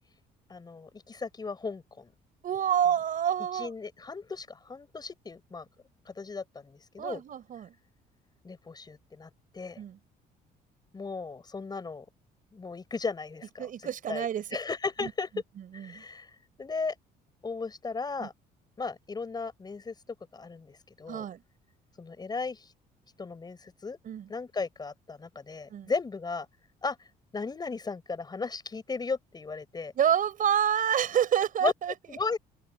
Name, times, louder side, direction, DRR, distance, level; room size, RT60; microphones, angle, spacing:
voice 1, 0.5-2.1 3.5-5.7 6.1-7.2 8.4-9.8 10.9-12.1 12.5-13.7 14.1-14.3 14.5-15.3 15.7-16.3 16.6-16.9 17.4-18.3 18.8-19.9 20.3-21.3 22.0-22.7 23.2-24.0 24.3-26.5 26.8-27.0 27.3-29.9 31.6-31.7 32.1-32.4, left 4 dB, 25° left, 5.6 m, -35 dB
voice 2, 2.4-3.7 7.0-7.7 9.8-10.0 13.6-14.4 15.0-15.1 15.7-16.0 18.2-18.3 21.1-21.4 24.0-24.3 25.7-25.9 30.0-31.9, right 9 dB, 55° right, 5.7 m, -28 dB
open air
cardioid pair, 110°, 17 cm